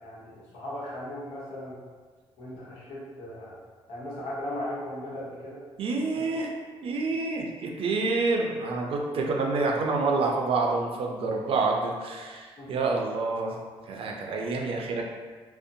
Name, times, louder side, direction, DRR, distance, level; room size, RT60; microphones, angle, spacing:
voice 1, 0.0-1.8 2.4-3.6 3.9-5.6 6.1-6.2 12.6-12.7, left 1 dB, 80° left, -7 dB, 1.0 m, -37 dB
voice 2, 5.8-6.5 6.8-13.6 13.9-15.0, right 3 dB, 60° right, 0 dB, 0.4 m, -28 dB
2.6 x 2.0 x 2.7 m, 1.5 s
cardioid pair, 75°, 11 cm